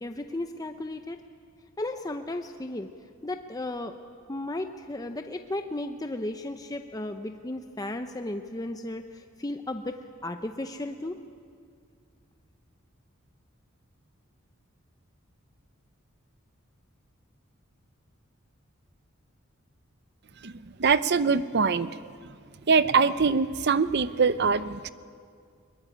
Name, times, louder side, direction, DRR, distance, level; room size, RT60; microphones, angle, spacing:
voice 1, 0.0-1.2 1.8-2.9 3.2-3.9 4.3-11.2, left 1 dB, 20° left, 7 dB, 0.7 m, -34 dB
voice 2, 20.8-21.9 22.7-24.9, right 5 dB, 55° right, 14 dB, 0.7 m, -23 dB
22.0 x 21.0 x 10.0 m, 2.2 s
head